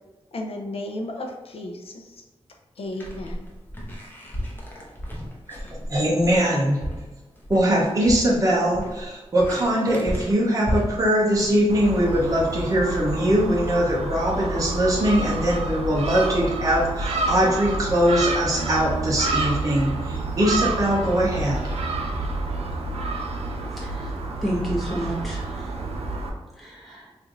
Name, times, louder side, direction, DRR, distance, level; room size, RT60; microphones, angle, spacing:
voice 1, 0.3-2.2 2.8-3.5, left 1 dB, 65° left, 2 dB, 0.6 m, -34 dB
sound 1, 2.9-12.8, equal, 20° left, 0.8 m, -34 dB
voice 2, 5.9-6.8 7.5-21.6, equal, 35° right, -3 dB, 0.7 m, -21 dB
Gull seagull, 11.7-26.3, right 2 dB, 75° right, 0.5 m, -29 dB
sound 2, 18.6-23.5, right 5 dB, 50° left, 0.9 m, -35 dB
voice 3, 23.7-24.2 24.4-25.7 26.6-27.1, right 1 dB, ahead, -6 dB, 1.2 m, -30 dB
3.1 x 2.5 x 3.7 m, 1.2 s
wide cardioid pair, 105°, 10 cm